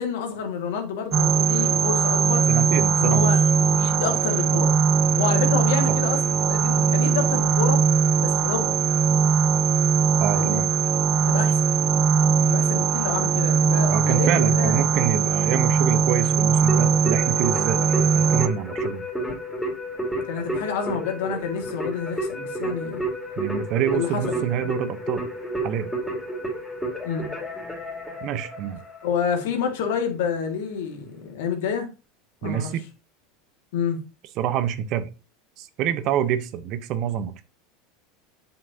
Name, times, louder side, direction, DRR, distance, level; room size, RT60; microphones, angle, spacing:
voice 1, 0.0-2.5 3.0-4.8 5.2-6.2 6.5-7.8 8.2-8.8 10.3-10.6 11.3-11.7 12.5-14.8 20.3-23.0 23.9-24.5 27.0-27.3 29.0-31.9 32.4-32.7 33.7-34.0, left 6 dB, 75° left, 2.0 m, -28 dB
sound 1, 1.1-18.5, right 6 dB, 30° right, 0.5 m, -20 dB
voice 2, 2.5-3.3 5.9-6.0 10.2-10.7 13.9-19.0 23.4-25.3 25.6-25.9 28.2-28.8 32.4-32.8 34.4-35.1 35.6-37.4, right 9 dB, 55° right, 0.9 m, -26 dB
Keyboard (musical), 16.7-29.1, right 1 dB, 5° left, 2.8 m, -31 dB
7.7 x 5.8 x 2.8 m
hypercardioid pair, 105°, 0 cm